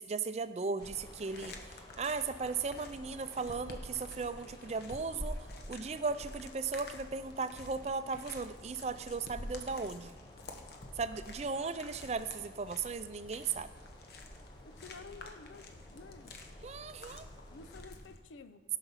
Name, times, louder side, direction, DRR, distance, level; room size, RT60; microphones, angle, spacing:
voice 1, 0.0-1.6 2.0-10.1 11.0-13.7 16.6-17.3, right 4 dB, 35° right, 12 dB, 0.4 m, -37 dB
sound 1, 0.8-18.2, left 1 dB, 55° left, 1.0 m, -48 dB
sound 2, 0.8-17.8, left 1 dB, 25° left, 0.8 m, -58 dB
voice 2, 14.7-16.5 17.5-18.6, left 4 dB, 85° left, 11 dB, 0.6 m, -52 dB
16.5 x 5.9 x 5.7 m, 1.4 s
head